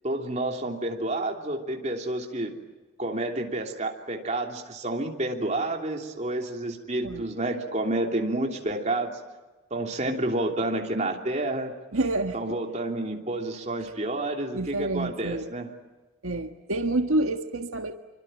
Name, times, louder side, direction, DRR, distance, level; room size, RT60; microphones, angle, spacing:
voice 1, 0.0-2.5 3.0-9.2 9.7-11.7 12.3-15.7, right 2 dB, 30° right, 2 dB, 3.1 m, -29 dB
voice 2, 11.9-12.4 14.5-15.5 16.2-17.9, right 2 dB, 80° right, 6 dB, 1.5 m, -28 dB
26.5 x 24.5 x 9.1 m, 1.2 s
head